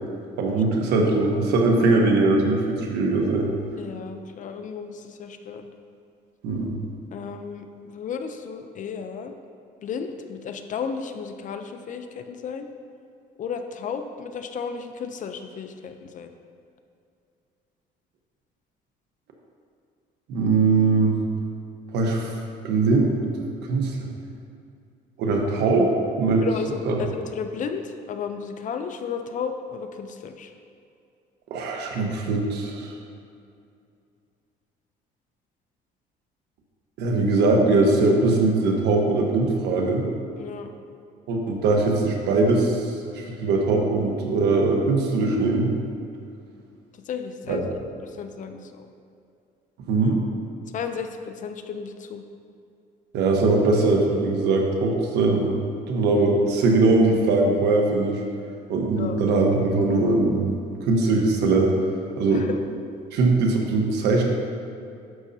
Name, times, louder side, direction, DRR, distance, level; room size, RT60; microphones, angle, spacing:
voice 1, 0.4-3.5 6.4-6.7 20.3-21.1 21.9-22.3 22.6-24.0 25.2-25.9 26.2-26.4 26.8-27.0 31.5-32.9 37.0-40.1 41.3-45.7 47.5-47.6 49.9-50.2 53.1-55.6 55.9-58.2 58.7-60.5 60.9-61.7 62.2-62.5 63.1-64.2, right 3 dB, 80° right, 1 dB, 1.3 m, -21 dB
voice 2, 3.8-5.7 7.1-9.3 9.8-12.7 13.4-16.3 26.4-30.5 40.4-40.7 47.1-47.7 48.0-48.9 50.7-52.2 59.0-59.2 62.3-62.6, left 6 dB, 50° left, 7 dB, 0.6 m, -33 dB
11.0 x 6.4 x 2.8 m, 2.5 s
cardioid pair, 110°, 17 cm